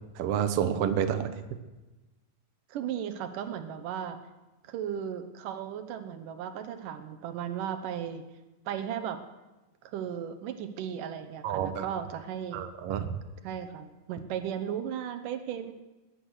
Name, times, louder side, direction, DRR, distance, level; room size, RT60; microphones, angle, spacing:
voice 1, 0.2-1.3 11.4-11.8 12.5-13.2, right 9 dB, 65° right, 9 dB, 1.6 m, -29 dB
voice 2, 2.7-4.2 4.7-8.2 8.7-9.2 9.8-12.6 13.4-15.7, right 9 dB, 80° right, 8 dB, 2.6 m, -36 dB
20.0 x 9.9 x 6.5 m, 1.1 s
omnidirectional pair, 3.7 m